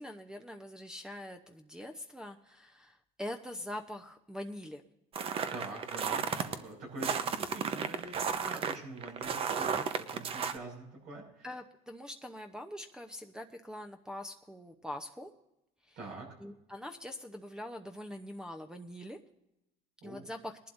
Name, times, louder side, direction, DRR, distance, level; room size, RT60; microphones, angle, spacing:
voice 1, 0.0-4.8 11.4-15.3 15.9-16.0 16.4-19.2 20.0-20.6, left 1 dB, 5° right, 6 dB, 0.8 m, -43 dB
sound 1, 5.2-6.6 7.0-10.6, right 6 dB, 45° right, 0.9 m, -33 dB
voice 2, 5.5-11.5 16.0-16.3 20.0-20.2, right 2 dB, 75° right, -2 dB, 6.1 m, -45 dB
21.0 x 11.5 x 2.6 m, 0.84 s
supercardioid pair, 100°, 14 cm